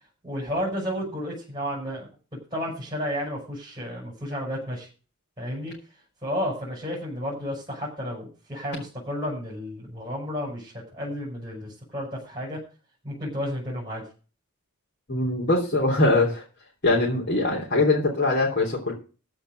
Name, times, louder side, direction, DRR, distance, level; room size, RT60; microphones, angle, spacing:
voice 1, 0.2-2.1 2.5-4.9 5.4-5.7 6.2-12.6 13.0-14.0, equal, 20° right, -4 dB, 6.1 m, -32 dB
voice 2, 15.1-16.4 16.8-18.9, left 2 dB, 50° left, -2 dB, 3.3 m, -22 dB
14.5 x 5.1 x 7.8 m, 0.36 s
head